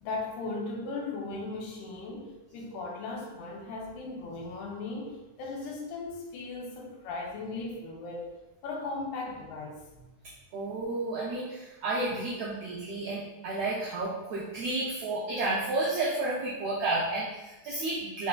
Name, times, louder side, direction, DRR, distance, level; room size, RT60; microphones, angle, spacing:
voice 1, 0.0-8.3 8.6-10.1, left 3 dB, 90° left, 0 dB, 2.1 m, -37 dB
voice 2, 10.5-18.3, right 2 dB, 85° right, -6 dB, 1.4 m, -31 dB
4.4 x 3.3 x 2.4 m, 1.0 s
omnidirectional pair, 3.5 m